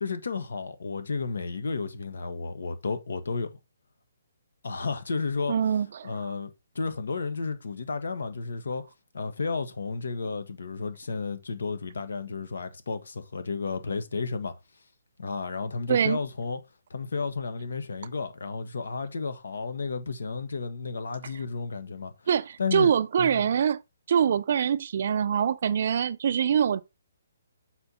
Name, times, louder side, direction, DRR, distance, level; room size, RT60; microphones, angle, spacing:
voice 1, 0.0-3.5 4.6-5.5 6.0-6.5 6.7-8.8 9.1-14.5 15.2-16.6 16.9-22.1 22.6-22.9 23.2-23.5, left 4 dB, 85° left, 1.3 m, -32 dB
voice 2, 5.5-6.2 15.9-16.2 22.3-23.8 24.1-26.8, right 8 dB, 45° right, 0.4 m, -24 dB
6.6 x 4.4 x 4.1 m
hypercardioid pair, 175°, 0 cm